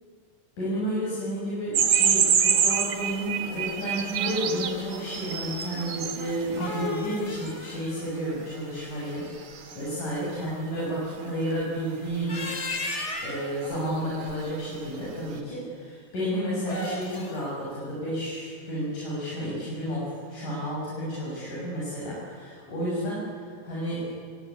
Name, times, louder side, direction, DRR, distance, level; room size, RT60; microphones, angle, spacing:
voice 1, 0.6-9.3 9.7-12.5 13.2-24.1, equal, 65° left, -6 dB, 8.1 m, -31 dB
sound 1, 1.7-6.9 7.5-7.6 9.5-9.8 10.1-10.2 11.1-11.6 12.9-13.0 13.6-13.9 14.1-14.4, right 7 dB, 65° right, 3.0 m, -26 dB
sound 2, 6.3-9.4 12.1-13.6 16.5-17.4, left 2 dB, 20° left, 2.7 m, -35 dB
26.0 x 24.0 x 8.4 m, 2.3 s
omnidirectional pair, 3.9 m